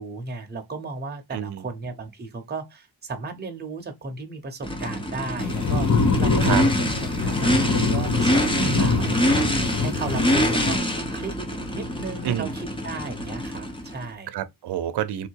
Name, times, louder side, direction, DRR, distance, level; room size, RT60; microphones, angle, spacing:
voice 1, 0.0-9.5 9.8-10.8 11.1-11.4 11.7-14.3, right 3 dB, 25° right, 0.9 m, -35 dB
voice 2, 1.3-1.6 6.4-6.6 8.6-9.3 12.2-12.5 14.3-15.3, right 11 dB, 80° right, 0.7 m, -29 dB
Race car auto racing / Idling / Accelerating revving vroom, 4.6-14.1, equal, 15° left, 0.8 m, -26 dB
sound 1, 5.4-10.8, left 4 dB, 50° left, 1.0 m, -24 dB
3.7 x 2.8 x 4.6 m
wide cardioid pair, 170°, 40 cm